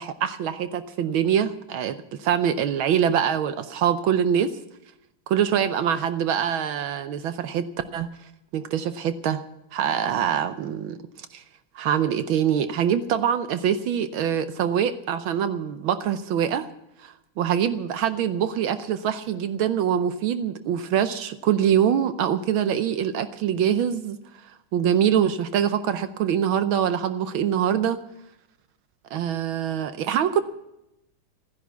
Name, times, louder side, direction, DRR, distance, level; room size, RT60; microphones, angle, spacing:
voice 1, 0.0-4.6 5.3-8.1 8.5-9.4 9.7-11.4 11.7-16.7 17.0-24.2 24.4-28.0 29.1-30.4, right 9 dB, 75° right, 11 dB, 1.5 m, -24 dB
14.5 x 10.5 x 8.1 m, 0.86 s
omnidirectional pair, 2.4 m